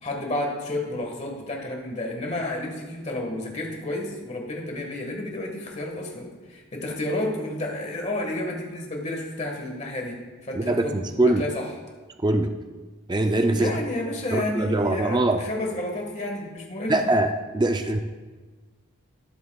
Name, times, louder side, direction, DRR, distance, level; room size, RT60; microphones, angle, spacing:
voice 1, 0.0-11.6 13.5-17.0, left 1 dB, 30° left, 1 dB, 1.5 m, -31 dB
voice 2, 10.5-11.4 12.2-12.5 13.1-13.7 14.3-15.5 16.9-18.0, right 2 dB, 20° right, 6 dB, 0.4 m, -22 dB
13.0 x 9.6 x 2.3 m, 1.3 s
head